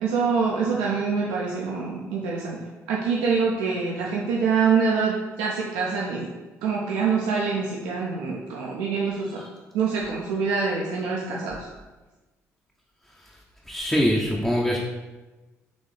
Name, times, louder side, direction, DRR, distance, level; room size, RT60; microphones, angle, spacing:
voice 1, 0.0-2.6 2.9-6.3 6.6-9.4 9.7-11.7, right 5 dB, 70° right, -3 dB, 0.4 m, -25 dB
voice 2, 13.7-14.8, equal, 5° left, -3 dB, 0.5 m, -23 dB
3.9 x 3.1 x 3.2 m, 1.2 s
figure-of-eight pair, 45°, 8 cm